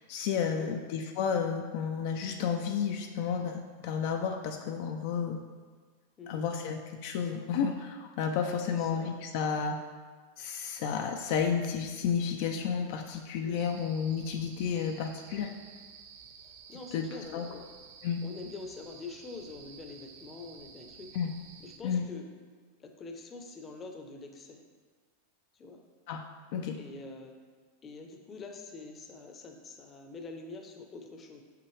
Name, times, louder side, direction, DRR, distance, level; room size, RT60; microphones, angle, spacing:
voice 1, 0.0-5.4 6.3-9.8 10.4-15.5 16.9-17.1 17.3-17.5 18.0-18.2 21.1-21.3 21.8-22.1 26.1-26.2 26.5-26.8, left 7 dB, 55° left, 4 dB, 0.5 m, -31 dB
voice 2, 6.2-6.5 8.7-9.2 13.4-13.7 16.4-17.7 18.2-21.1 21.6-22.3 22.8-24.6 25.5-25.8 26.8-27.4 27.8-31.4, left 3 dB, 20° left, 3 dB, 0.7 m, -45 dB
sound 1, 13.6-21.8, right 6 dB, 60° right, 0.7 m, -52 dB
6.8 x 5.9 x 3.2 m, 1.5 s
supercardioid pair, 150°, 0 cm